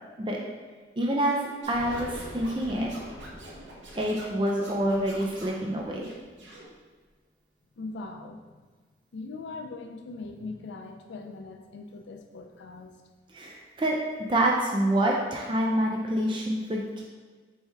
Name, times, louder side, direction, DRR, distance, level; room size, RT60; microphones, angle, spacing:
voice 1, 1.0-2.9 4.0-6.1 13.3-14.0 14.3-17.0, right 1 dB, 25° right, -1 dB, 0.4 m, -27 dB
Scratching (performance technique), 1.6-5.6 6.0-6.7, right 1 dB, 85° right, 0.8 m, -47 dB
Explosion, 1.7-6.6, equal, 45° left, 0.8 m, -45 dB
voice 2, 7.8-8.6 9.1-13.0, left 3 dB, 75° left, 4 dB, 0.4 m, -40 dB
4.4 x 3.3 x 3.3 m, 1.4 s
head